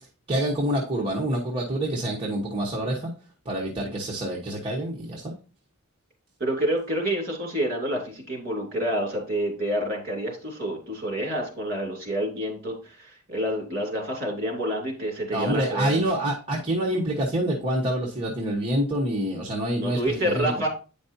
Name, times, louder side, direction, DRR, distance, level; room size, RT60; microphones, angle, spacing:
voice 1, 0.3-3.1 3.4-5.3 15.3-20.5, right 1 dB, 25° right, -4 dB, 1.1 m, -27 dB
voice 2, 6.4-16.0 19.8-20.7, right 1 dB, 45° right, 1 dB, 2.8 m, -28 dB
9.0 x 5.2 x 2.7 m, 0.35 s
head